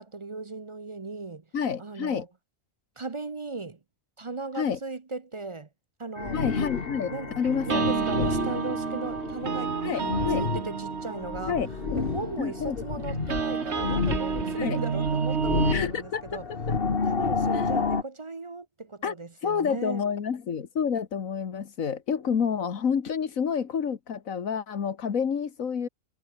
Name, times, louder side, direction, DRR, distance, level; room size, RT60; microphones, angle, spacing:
voice 1, 0.0-1.4 1.8-2.3 3.0-3.8 4.2-5.7 6.0-6.4 7.1-7.4 7.7-11.6 12.0-16.4 17.0-20.0, right 3 dB, 30° right, 0.7 m, -37 dB
voice 2, 1.5-2.3 4.6-4.8 6.3-8.3 9.8-10.4 11.5-12.0 12.4-12.8 14.6-14.8 15.7-16.2 17.5-17.6 19.0-19.1 19.4-25.9, left 7 dB, 90° left, 1.9 m, -29 dB
sound 1, 6.2-18.0, left 4 dB, 45° left, 1.8 m, -31 dB
sound 2, 7.4-15.8, right 5 dB, 55° right, 1.8 m, -30 dB
omnidirectional pair, 1.4 m